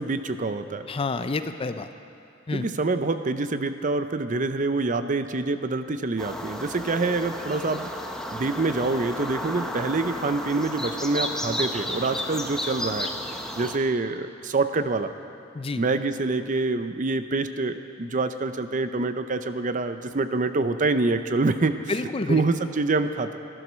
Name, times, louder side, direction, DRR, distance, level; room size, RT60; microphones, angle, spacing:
voice 1, 0.0-0.9 2.5-7.9 8.3-13.1 13.6-15.1 15.8-21.7 22.3-23.4, right 3 dB, 40° right, 10 dB, 0.6 m, -26 dB
voice 2, 0.9-1.9 2.5-2.7 15.5-15.8 21.9-22.4, left 3 dB, 30° left, 10 dB, 0.5 m, -28 dB
sound 1, 6.2-13.8, left 1 dB, 5° left, 0.9 m, -32 dB
16.5 x 11.5 x 6.2 m, 2.6 s
head